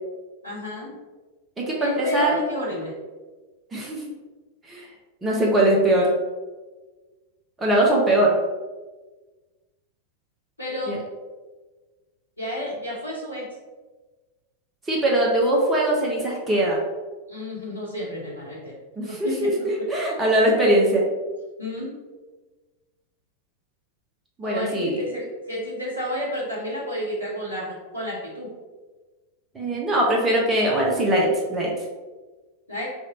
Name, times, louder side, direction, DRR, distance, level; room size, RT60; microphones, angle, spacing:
voice 1, 0.4-1.0 1.8-2.9 10.6-11.0 12.4-13.5 17.3-18.7 19.0-19.9 21.6-22.0 24.4-28.5 32.7-32.9, left 1 dB, 85° left, -6 dB, 0.9 m, -31 dB
voice 2, 1.6-2.4 3.7-4.0 4.7-4.9 5.2-6.1 7.6-8.4 10.9-11.0 14.9-16.8 19.0-21.0 24.4-25.0 29.5-31.7, right 1 dB, 15° right, -3 dB, 0.8 m, -21 dB
3.4 x 2.6 x 4.1 m, 1.3 s
figure-of-eight pair, 90°, 0 cm